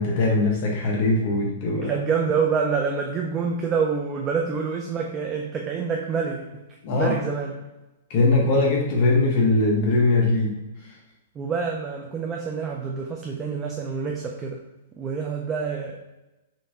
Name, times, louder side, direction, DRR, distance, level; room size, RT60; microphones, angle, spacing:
voice 1, 0.0-2.0 6.8-7.2 8.1-10.6, left 2 dB, 40° left, -1 dB, 0.8 m, -21 dB
voice 2, 1.8-6.6 7.0-7.5 11.4-14.6 15.0-16.0, right 5 dB, 15° right, 1 dB, 0.4 m, -27 dB
5.6 x 2.6 x 3.3 m, 1.0 s
hypercardioid pair, 160°, 0 cm